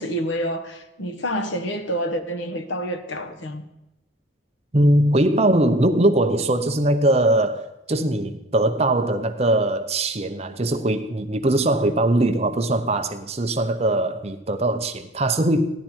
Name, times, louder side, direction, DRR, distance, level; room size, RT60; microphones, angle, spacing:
voice 1, 0.0-3.6, equal, 70° left, 1.2 m, -28 dB
voice 2, 4.7-15.7, right 1 dB, 30° right, 0.7 m, -21 dB
16.0 x 11.5 x 4.5 m
head